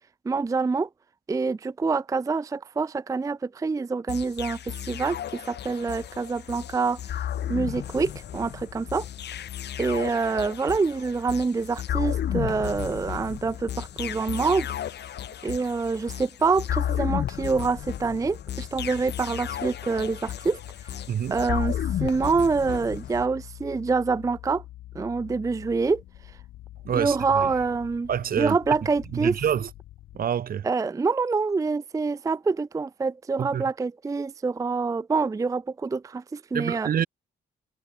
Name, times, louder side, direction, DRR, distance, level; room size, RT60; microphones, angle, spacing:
voice 1, 0.3-0.9 1.3-5.2 5.5-7.0 7.5-9.1 9.8-14.7 15.4-20.6 21.3-24.6 24.9-26.0 26.9-28.1 28.4-29.4 30.6-36.9, right 4 dB, 15° right, 0.4 m, -26 dB
sound 1, 4.1-23.3, left 10 dB, 60° left, 1.0 m, -33 dB
sound 2, 18.6-30.3, left 14 dB, 85° left, 7.1 m, -46 dB
voice 2, 26.8-27.5 28.1-28.6 29.2-29.7 30.1-30.6 33.4-33.6 36.5-37.1, right 9 dB, 45° right, 0.7 m, -27 dB
cardioid pair, 90°, 20 cm